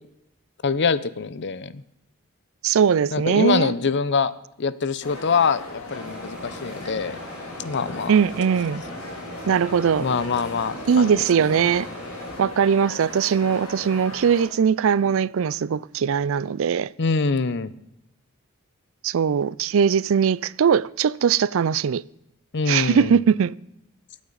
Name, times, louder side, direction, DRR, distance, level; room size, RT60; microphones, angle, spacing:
voice 1, 0.6-1.8 3.1-4.3 4.6-7.2 7.6-8.1 10.0-11.2 17.0-17.7 22.5-23.2, left 5 dB, 55° left, 0.7 m, -24 dB
voice 2, 2.6-3.7 8.1-8.8 9.5-10.1 10.9-11.9 12.4-16.9 19.0-22.0 22.7-23.5, right 7 dB, 65° right, 0.4 m, -20 dB
sound 1, 5.0-14.5, left 2 dB, 80° left, 3.1 m, -37 dB
sound 2, 5.9-12.4, left 1 dB, 5° right, 6.1 m, -40 dB
23.5 x 8.6 x 4.0 m
head